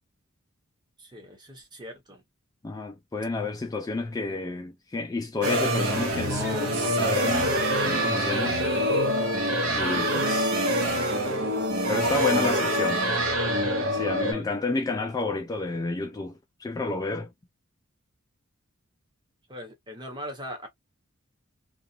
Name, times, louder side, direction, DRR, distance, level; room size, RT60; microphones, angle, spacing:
voice 1, 1.0-2.2 14.3-14.5 19.5-20.7, equal, 20° right, 1.0 m, -40 dB
voice 2, 2.6-8.6 9.7-10.6 11.9-13.0 13.8-17.3, left 3 dB, 15° left, 0.3 m, -30 dB
sound 1, 5.4-14.3, equal, 85° right, 0.9 m, -25 dB
sound 2, 5.7-14.3, right 3 dB, 55° right, 1.1 m, -36 dB
2.4 x 2.4 x 2.6 m
head